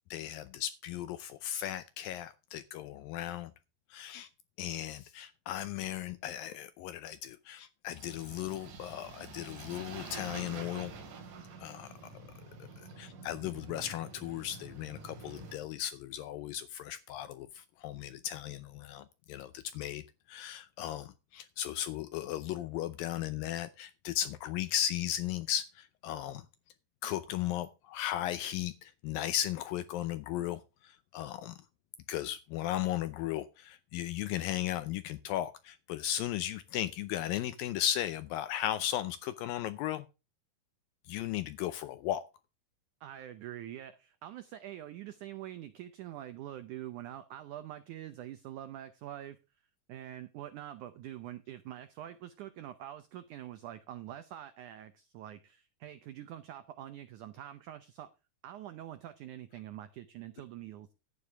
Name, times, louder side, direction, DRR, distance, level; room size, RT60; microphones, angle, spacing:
voice 1, 0.1-3.5 3.9-4.3 4.6-10.9 11.6-11.9 12.8-20.0 20.3-26.5 27.0-31.6 32.1-40.1 41.1-42.2, left 12 dB, 80° left, 2.1 m, -36 dB
sound 1, 7.9-15.6, right 4 dB, 60° right, 3.7 m, -47 dB
voice 2, 43.0-49.4 49.9-58.1 58.4-61.0, right 12 dB, 85° right, 1.7 m, -45 dB
11.5 x 9.8 x 3.4 m
omnidirectional pair, 4.6 m